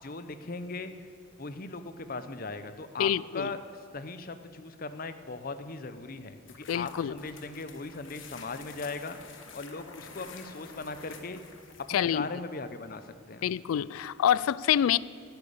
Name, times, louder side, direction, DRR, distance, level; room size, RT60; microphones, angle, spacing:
voice 1, 0.0-0.9 1.4-3.6 3.9-9.2 9.5-11.4 11.9-13.5, left 3 dB, 45° left, 10 dB, 0.7 m, -39 dB
voice 2, 3.0-3.5 6.7-7.1 11.9-12.3 13.4-15.0, left 10 dB, 85° left, 20 dB, 0.3 m, -26 dB
sound 1, 6.4-12.0, left 5 dB, 65° left, 1.3 m, -49 dB
10.5 x 10.5 x 8.6 m, 2.2 s
head